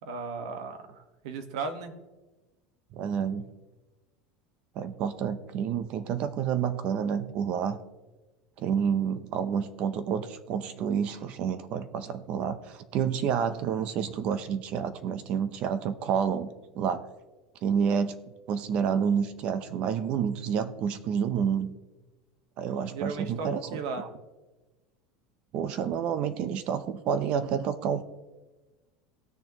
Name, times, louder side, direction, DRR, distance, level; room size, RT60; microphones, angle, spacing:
voice 1, 0.0-1.9 22.9-24.1, right 4 dB, 65° right, 8 dB, 1.3 m, -36 dB
voice 2, 2.9-3.4 4.8-7.8 8.6-16.5 16.7-17.0 17.6-18.2 18.5-21.8 22.6-23.8 25.5-28.0, right 7 dB, 35° right, 12 dB, 0.6 m, -29 dB
18.5 x 6.6 x 3.0 m, 1.2 s
cardioid pair, 180°, 3 cm